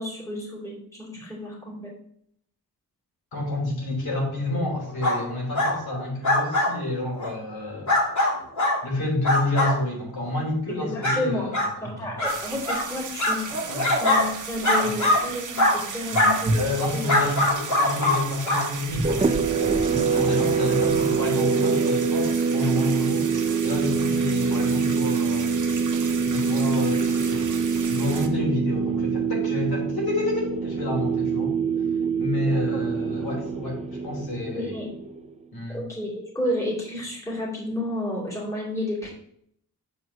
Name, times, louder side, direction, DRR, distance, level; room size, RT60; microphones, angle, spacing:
voice 1, 0.0-1.9 10.7-11.5 11.8-13.6 13.9-16.7 16.9-17.1 32.3-32.8 34.5-34.8 35.7-39.1, left 1 dB, 10° left, -5 dB, 2.5 m, -31 dB
voice 2, 3.3-7.9 8.8-12.2 13.7-14.0 14.8-15.0 16.5-25.5 26.2-27.6 27.9-31.6 32.2-34.7 35.5-35.8, left 2 dB, 80° left, -2 dB, 3.4 m, -29 dB
sound 1, 5.0-5.2 5.5-5.7 6.2-6.7 7.2-7.3 7.9-8.8 9.2-9.7 10.3-10.4 11.0-11.2 11.5-11.7 12.2-12.3 12.6-12.8 13.2-14.2 14.6-15.2 15.6-15.8 16.1-16.4 17.1-18.2 18.4-18.6 19.2-19.3, left 1 dB, 50° left, 2.7 m, -21 dB
sound 2, 12.2-28.3, right 4 dB, 55° right, 1.1 m, -34 dB
sound 3, 19.0-35.3, right 5 dB, 20° right, 0.4 m, -25 dB
7.2 x 4.6 x 6.0 m, 0.68 s
wide cardioid pair, 175°, 37 cm